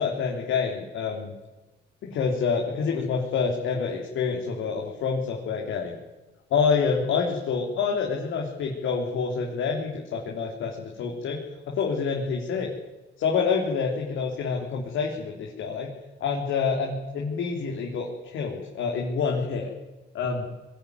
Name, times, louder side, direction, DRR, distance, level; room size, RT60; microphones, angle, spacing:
voice 1, 0.0-1.3 2.0-6.0 6.5-11.4 11.7-12.7 13.2-15.9 16.2-19.7 20.1-20.5, left 5 dB, 80° left, 0 dB, 3.7 m, -27 dB
22.0 x 16.0 x 9.8 m, 1.1 s
cardioid pair, 90°, 20 cm